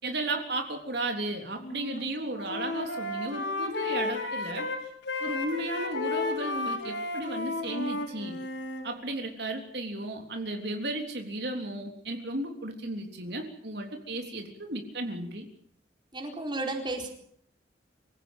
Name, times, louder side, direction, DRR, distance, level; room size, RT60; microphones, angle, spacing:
voice 1, 0.0-4.7 5.2-8.4 8.8-15.5, right 2 dB, 65° right, 3 dB, 3.6 m, -34 dB
Wind instrument woodwind instrument, 1.6-2.0 2.3-8.9, left 2 dB, 85° left, 5.9 m, -33 dB
voice 2, 16.1-17.1, right 2 dB, 25° right, 2 dB, 4.5 m, -33 dB
26.0 x 16.5 x 9.0 m, 0.64 s
head